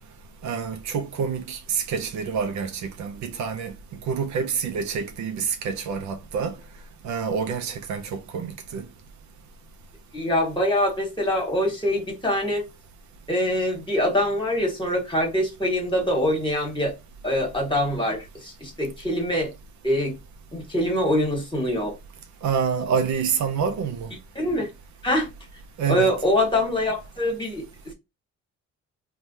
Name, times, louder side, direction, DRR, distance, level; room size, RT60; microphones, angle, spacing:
voice 1, 0.4-3.7 4.1-6.5 7.0-8.8 22.4-24.1 25.8-26.1, right 6 dB, 70° right, 0.5 m, -27 dB
voice 2, 10.1-12.6 13.3-16.9 17.2-19.5 19.8-20.1 20.5-21.9 24.3-24.7 25.0-25.3 25.9-27.6, left 1 dB, 15° left, 1.4 m, -24 dB
3.1 x 2.3 x 2.6 m
cardioid pair, 90°, 30 cm